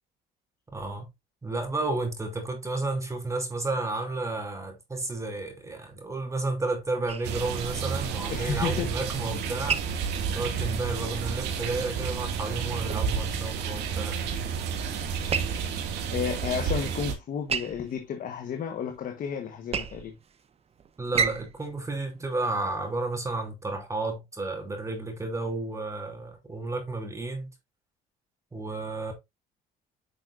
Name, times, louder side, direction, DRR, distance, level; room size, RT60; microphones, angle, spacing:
voice 1, 0.7-1.1 1.4-9.8 10.3-14.2 21.0-27.5 28.5-29.1, right 2 dB, 15° right, 3.0 m, -32 dB
sound 1, 7.1-23.1, right 6 dB, 35° right, 0.9 m, -37 dB
sound 2, 7.2-17.1, right 6 dB, 80° right, 2.2 m, -31 dB
voice 2, 8.3-8.9 10.5-10.7 16.1-20.2, left 7 dB, 55° left, 1.3 m, -32 dB
9.7 x 6.1 x 2.6 m
cardioid pair, 110°, 17 cm